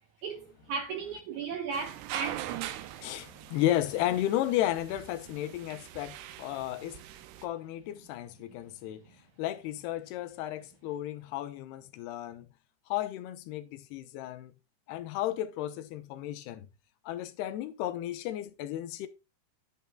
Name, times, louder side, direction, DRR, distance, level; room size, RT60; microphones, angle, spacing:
voice 1, 0.2-2.8, right 5 dB, 70° right, 1.9 m, -36 dB
sound 1, 1.7-7.5, right 12 dB, 90° right, 3.0 m, -42 dB
voice 2, 3.0-7.0 7.4-9.0 9.4-12.5 12.9-14.5 14.9-16.7 17.1-19.1, left 13 dB, 85° left, 2.9 m, -33 dB
11.0 x 8.0 x 2.2 m
omnidirectional pair, 4.6 m